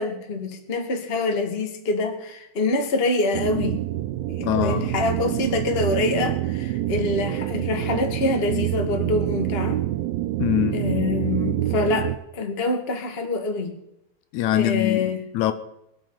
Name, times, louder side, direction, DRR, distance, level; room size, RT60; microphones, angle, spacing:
voice 1, 0.0-3.8 4.4-9.9 10.7-13.7 14.5-15.2, left 3 dB, 30° left, 1.1 m, -25 dB
sound 1, 3.3-12.2, right 15 dB, 80° right, 2.5 m, -26 dB
voice 2, 4.4-4.9 10.4-10.8 14.3-15.5, left 13 dB, 85° left, 1.6 m, -23 dB
25.0 x 9.0 x 3.9 m
omnidirectional pair, 4.3 m